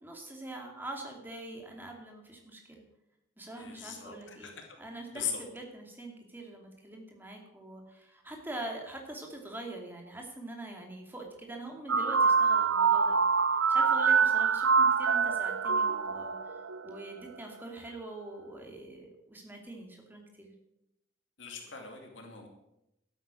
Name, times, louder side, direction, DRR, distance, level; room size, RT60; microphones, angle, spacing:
voice 1, 0.0-2.8 3.4-4.5 4.8-13.4 13.7-20.5, right 2 dB, 10° right, 1 dB, 2.5 m, -44 dB
voice 2, 3.6-4.6 5.1-5.4 21.4-22.5, left 7 dB, 70° left, 2 dB, 2.5 m, -39 dB
sound 1, 11.9-16.9, right 5 dB, 90° right, 0.7 m, -25 dB
12.0 x 9.5 x 7.6 m, 0.88 s
head